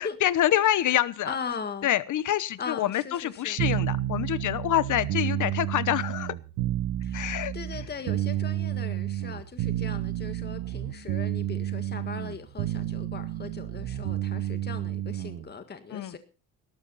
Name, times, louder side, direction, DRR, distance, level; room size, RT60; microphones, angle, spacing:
voice 1, 0.0-1.4 1.8-6.3 7.1-7.5 15.9-16.2, left 12 dB, 60° left, 1.1 m, -26 dB
voice 2, 0.6-1.9 2.6-3.6 7.0-16.2, left 5 dB, 30° left, 1.8 m, -39 dB
sound 1, 3.6-15.5, right 13 dB, 75° right, 1.4 m, -30 dB
17.5 x 13.5 x 4.1 m
cardioid pair, 105°, 35 cm